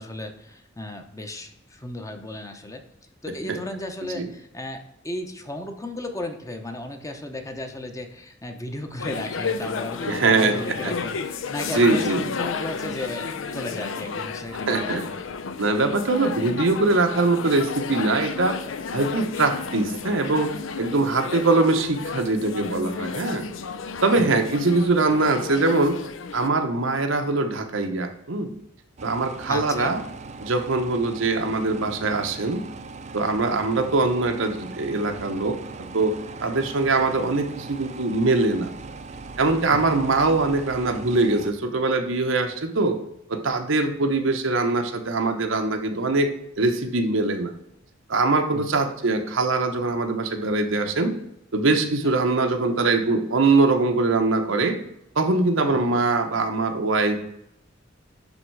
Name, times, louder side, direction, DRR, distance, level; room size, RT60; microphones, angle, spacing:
voice 1, 0.0-2.8 3.2-13.3 13.5-15.1 24.2-24.3 29.5-29.9 33.8-33.9 39.7-39.8 48.5-48.7 55.7-55.8, left 1 dB, 15° left, 5 dB, 0.8 m, -35 dB
sound 1, 9.0-26.5, left 5 dB, 75° left, 0.6 m, -32 dB
voice 2, 10.1-10.6 10.8-10.9 11.6-12.2 14.7-15.1 15.6-18.6 18.9-20.5 20.8-23.5 24.0-26.0 26.3-28.5 29.0-30.0 30.4-32.7 33.1-36.1 36.4-38.7 39.4-43.0 43.3-46.3 46.6-47.5 48.1-51.2 51.5-54.8 55.2-57.2, right 3 dB, 85° right, 6 dB, 0.9 m, -22 dB
sound 2, 29.0-41.5, right 4 dB, 35° right, 0.5 m, -39 dB
10.5 x 3.6 x 4.7 m, 0.81 s
head